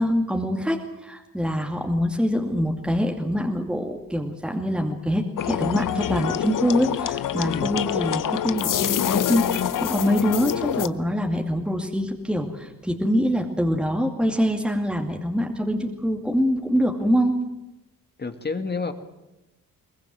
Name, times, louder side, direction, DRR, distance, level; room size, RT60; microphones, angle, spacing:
voice 1, 0.0-17.4, equal, 5° right, 2 dB, 2.5 m, -24 dB
sound 1, 5.4-10.9, left 10 dB, 65° left, 0.9 m, -26 dB
voice 2, 7.4-7.8 18.2-18.9, left 4 dB, 30° left, 7 dB, 2.1 m, -29 dB
22.5 x 20.0 x 7.8 m, 0.97 s
cardioid pair, 85°, 34 cm